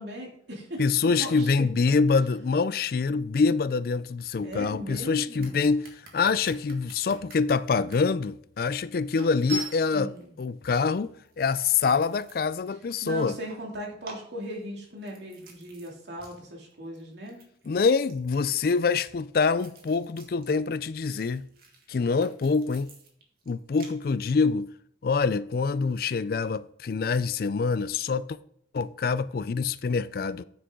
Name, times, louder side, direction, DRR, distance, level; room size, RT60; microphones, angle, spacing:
voice 1, 0.0-0.8 1.2-1.5 4.4-5.7 9.9-10.3 13.0-17.4, right 1 dB, 75° right, 2.6 m, -38 dB
voice 2, 0.8-5.9 6.1-13.4 17.7-21.5 21.9-22.9 23.5-24.7 25.0-28.4 28.7-30.4, left 4 dB, 55° left, 0.4 m, -25 dB
sound 1, 5.4-8.0 8.6-8.7 9.2-10.2 11.0-12.6 13.0-13.7 14.0-15.9 16.2-16.4 16.6-20.5 20.8-23.9, right 1 dB, 55° right, 1.9 m, -44 dB
9.5 x 6.3 x 3.7 m
head